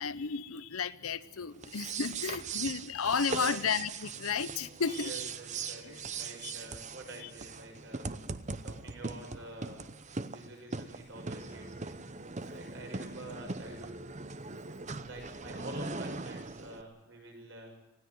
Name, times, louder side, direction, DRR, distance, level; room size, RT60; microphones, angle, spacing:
voice 1, 0.0-5.1 5.8-6.0 6.4-6.5 7.2-7.3, left 6 dB, 75° left, 0.8 m, -33 dB
sound 1, 1.6-16.8, right 4 dB, 30° right, 0.8 m, -40 dB
voice 2, 3.3-3.6 5.0-8.1 8.6-9.9 10.3-12.0 12.4-14.1 14.9-17.7, right 1 dB, 55° right, 6.7 m, -47 dB
20.5 x 16.0 x 9.4 m
head